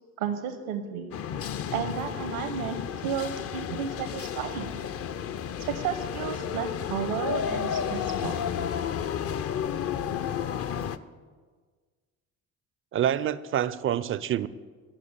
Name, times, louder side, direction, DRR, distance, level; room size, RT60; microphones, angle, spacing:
voice 1, 0.2-1.1 1.7-4.7 5.6-8.4, right 7 dB, 75° right, 8 dB, 0.9 m, -33 dB
sound 1, 1.1-11.0, left 8 dB, 35° left, 0.5 m, -32 dB
voice 2, 12.9-14.5, right 10 dB, 30° right, 17 dB, 0.4 m, -27 dB
10.5 x 6.2 x 7.2 m, 1.5 s
figure-of-eight pair, 50°, 43 cm